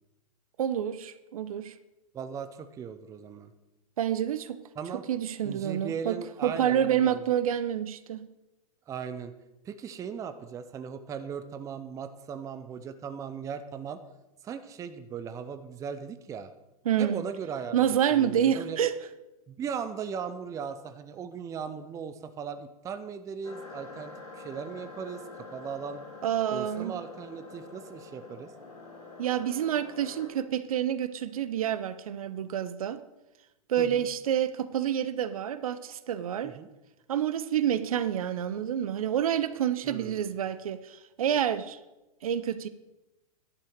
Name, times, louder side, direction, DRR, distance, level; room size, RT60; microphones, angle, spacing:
voice 1, 0.6-1.7 4.0-4.6 5.1-6.2 6.4-8.3 16.8-17.2 17.7-18.9 26.2-26.9 29.2-33.0 33.7-36.5 37.1-41.8 42.2-42.7, right 10 dB, 65° right, 14 dB, 0.7 m, -28 dB
voice 2, 2.1-3.5 4.8-5.0 5.4-7.2 8.9-9.3 9.6-14.0 14.4-16.5 17.0-18.8 19.5-26.0 26.5-28.5 33.8-34.1 36.4-36.7 39.8-40.2, right 7 dB, 15° right, 10 dB, 0.6 m, -38 dB
sound 1, 23.4-30.3, left 3 dB, 80° left, 4.2 m, -46 dB
11.0 x 5.6 x 6.5 m, 1.0 s
hypercardioid pair, 110°, 19 cm